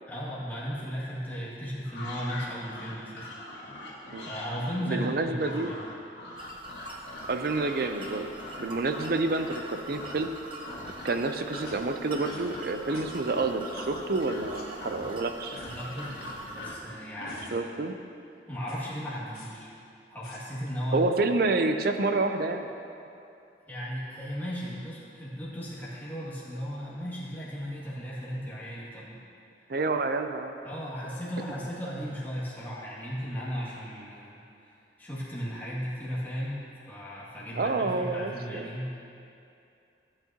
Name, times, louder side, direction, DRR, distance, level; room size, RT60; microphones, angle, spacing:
voice 1, 0.1-3.3 4.2-5.8 15.6-17.7 18.5-19.7 20.1-21.1 23.7-29.2 30.6-34.4 35.0-36.6 36.9-39.0, equal, 10° left, -9 dB, 2.2 m, -36 dB
sound 1, 1.8-9.7 9.9-10.4 10.6-11.2 11.5-17.5, left 1 dB, 80° left, 1.9 m, -42 dB
voice 2, 4.8-5.7 7.3-8.3 8.6-10.3 11.0-15.6 17.5-18.0 20.9-22.7 29.7-30.5 37.5-38.7, right 3 dB, 55° right, 7 dB, 0.6 m, -28 dB
sound 2, 6.4-16.6, right 1 dB, 30° right, 1.0 m, -44 dB
sound 3, 11.6-11.7 12.3-12.4 12.9-13.0 13.7-14.1 14.5-14.6 15.5-15.8 16.3-17.0 17.2-17.5 18.6-18.8 19.3-19.5 20.2-20.4, left 4 dB, 55° left, 2.6 m, -50 dB
16.0 x 8.8 x 2.9 m, 2.6 s
head